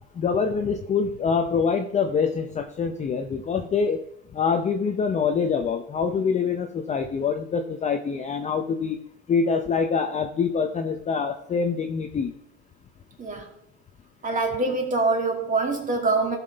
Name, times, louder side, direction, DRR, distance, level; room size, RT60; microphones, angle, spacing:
voice 1, 0.1-4.0 4.3-9.0 9.3-12.3, left 5 dB, 20° left, 5 dB, 0.6 m, -25 dB
voice 2, 14.2-16.4, right 3 dB, 25° right, 2 dB, 2.3 m, -24 dB
14.5 x 5.9 x 4.0 m, 0.76 s
supercardioid pair, 120°, 35 cm